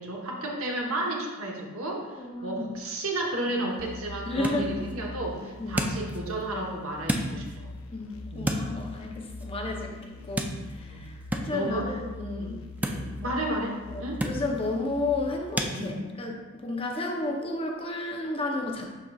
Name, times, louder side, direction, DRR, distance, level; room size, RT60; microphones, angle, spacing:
voice 1, 0.0-7.4 8.3-8.6 10.9-11.1 11.5-11.9 12.4-14.2 15.7-16.0, right 1 dB, 70° right, -1 dB, 1.1 m, -32 dB
voice 2, 2.2-2.8 3.5-3.7 4.3-4.7 5.6-5.9 7.9-10.5 10.8-12.6 13.9-18.9, left 2 dB, 25° left, 1 dB, 0.7 m, -32 dB
sound 1, 3.2-15.8, right 1 dB, 10° right, 0.4 m, -36 dB
sound 2, 3.8-15.4, left 2 dB, 75° left, 0.6 m, -42 dB
11.0 x 3.8 x 2.3 m, 1.2 s
head